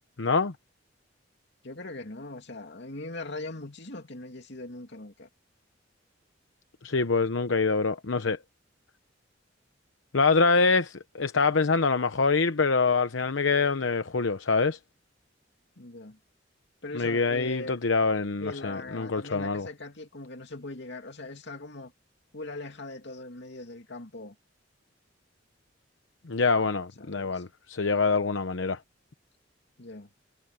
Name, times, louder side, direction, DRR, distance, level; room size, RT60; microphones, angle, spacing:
voice 1, 0.2-0.5 6.8-8.4 10.1-14.8 16.9-19.7 26.3-28.8, left 4 dB, 85° left, 0.9 m, -25 dB
voice 2, 1.6-5.3 15.8-16.2 16.8-17.8 18.4-21.9 22.3-24.4 27.0-27.4 29.8-30.1, left 2 dB, 65° left, 2.6 m, -40 dB
head